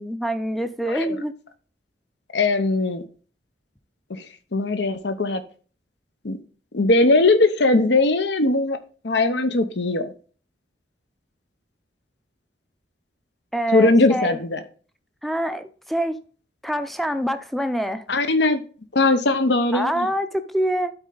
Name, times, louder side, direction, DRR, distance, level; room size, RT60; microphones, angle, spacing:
voice 1, 0.0-1.3 13.5-14.4 15.2-16.2 16.6-18.1 19.7-20.9, equal, ahead, 0.5 m, -25 dB
voice 2, 2.3-3.0 4.1-4.3 4.5-5.4 6.2-6.4 6.7-8.8 9.0-10.1 13.7-14.6 18.1-18.6 18.9-20.1, left 2 dB, 70° left, 0.9 m, -20 dB
12.0 x 4.4 x 3.9 m
head